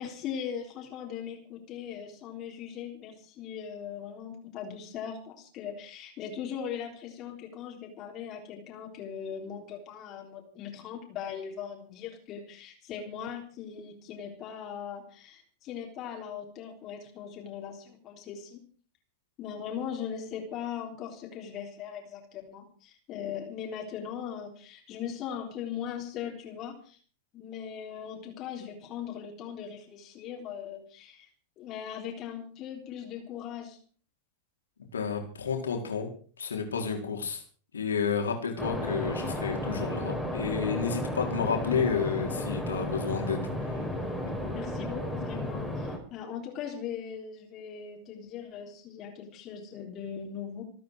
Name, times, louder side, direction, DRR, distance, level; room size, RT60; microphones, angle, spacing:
voice 1, 0.0-18.7 19.4-27.0 27.3-31.3 31.6-33.8 44.5-50.6, left 8 dB, 35° left, 1 dB, 3.7 m, -39 dB
voice 2, 34.9-36.1 36.4-37.4 37.7-43.4, left 6 dB, 70° left, 3 dB, 4.1 m, -31 dB
sound 1, 38.6-46.0, left 1 dB, 5° right, 4.9 m, -33 dB
27.5 x 9.3 x 4.7 m, 0.43 s
figure-of-eight pair, 90°, 0 cm